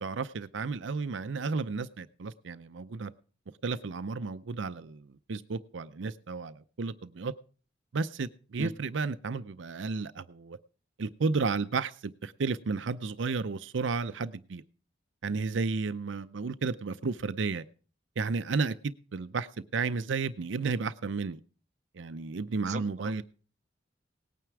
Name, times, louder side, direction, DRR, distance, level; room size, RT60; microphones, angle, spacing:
voice 1, 0.0-3.1 3.6-7.3 7.9-10.6 11.0-14.6 15.2-17.6 18.2-19.5 19.7-21.4 21.9-23.2, right 4 dB, 80° right, 0.6 m, -32 dB
voice 2, 22.7-23.2, right 1 dB, 40° right, 1.1 m, -38 dB
18.5 x 9.3 x 4.7 m
head